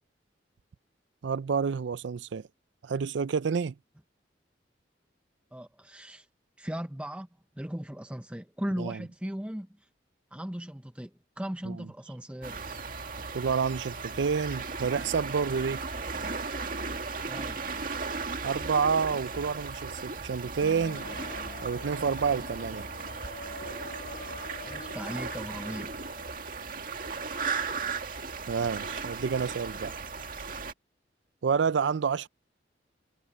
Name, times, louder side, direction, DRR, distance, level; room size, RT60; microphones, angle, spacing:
voice 1, 1.2-2.4 2.8-3.7 8.8-9.0 11.6-11.9 13.3-15.8 18.4-21.1 21.6-22.9 28.5-30.0 31.4-32.3, right 6 dB, 75° right, 0.4 m, -29 dB
voice 2, 5.5-6.3 6.6-7.3 7.6-9.7 10.3-12.6 17.2-17.6 24.6-25.9, equal, 5° right, 0.7 m, -37 dB
sound 1, 12.4-30.7, right 4 dB, 50° right, 2.0 m, -36 dB
sound 2, 20.6-26.4, left 2 dB, 50° left, 1.0 m, -45 dB
head